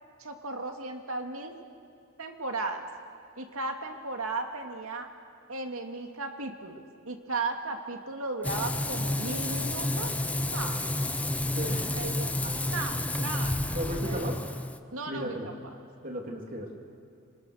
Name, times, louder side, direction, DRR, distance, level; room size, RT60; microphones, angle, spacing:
voice 1, 0.2-1.5 2.2-2.9 3.4-5.1 5.5-10.9 11.9-12.3 12.7-14.3 14.9-15.4, right 3 dB, 85° right, 4 dB, 2.2 m, -36 dB
Frying (food), 8.4-14.8, left 1 dB, 5° left, 0.5 m, -30 dB
voice 2, 11.5-12.1 12.4-12.5 13.7-14.4 15.1-15.5 16.0-16.7, equal, 40° right, 1 dB, 2.9 m, -35 dB
26.0 x 23.5 x 6.5 m, 2.4 s
head